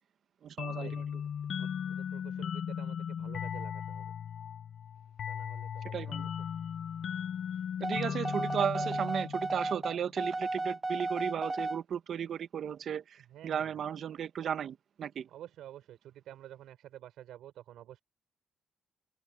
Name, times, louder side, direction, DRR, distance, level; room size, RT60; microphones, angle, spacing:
voice 1, 0.4-1.0 5.9-6.3 7.8-15.3, right 8 dB, 60° right, 1.1 m, -35 dB
sound 1, 0.6-9.9, left 8 dB, 60° left, 0.6 m, -37 dB
voice 2, 1.9-4.1 5.3-6.1 8.7-8.9 13.3-13.7 15.3-18.0, right 12 dB, 80° right, 5.9 m, -50 dB
sound 2, 7.8-11.8, right 2 dB, 15° right, 0.9 m, -34 dB
cardioid pair, 90°, 0 cm